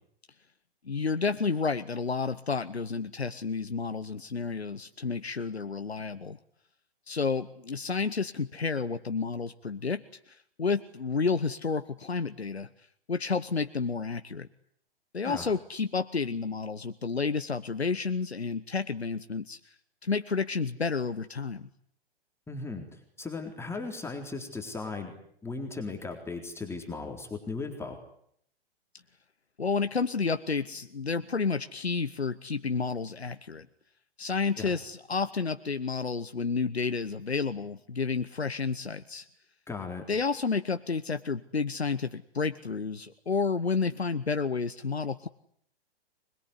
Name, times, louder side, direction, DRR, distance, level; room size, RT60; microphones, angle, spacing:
voice 1, 0.8-6.4 7.1-14.5 15.1-21.7 29.6-33.7 34.2-39.3 40.1-45.3, left 4 dB, 90° left, 11 dB, 1.0 m, -31 dB
voice 2, 22.5-25.2 25.4-28.0 34.6-34.7 39.7-40.0, left 3 dB, 10° left, 3 dB, 3.9 m, -37 dB
25.5 x 21.0 x 9.8 m, 0.69 s
figure-of-eight pair, 115°, 31 cm